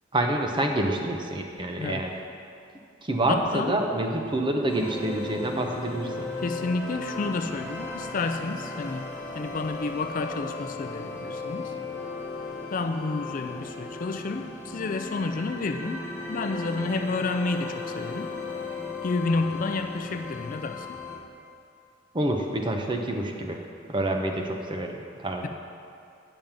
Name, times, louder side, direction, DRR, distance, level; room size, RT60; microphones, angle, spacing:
voice 1, 0.1-2.1 3.0-6.3 22.1-23.6 23.9-25.5, right 1 dB, 25° right, 2 dB, 0.8 m, -27 dB
voice 2, 3.3-3.8 6.4-11.7 12.7-18.3 19.0-21.0, left 3 dB, 45° left, 7 dB, 0.4 m, -30 dB
sound 1, 4.7-21.2, left 3 dB, 10° left, 1.4 m, -36 dB
9.0 x 5.2 x 7.2 m, 2.4 s
head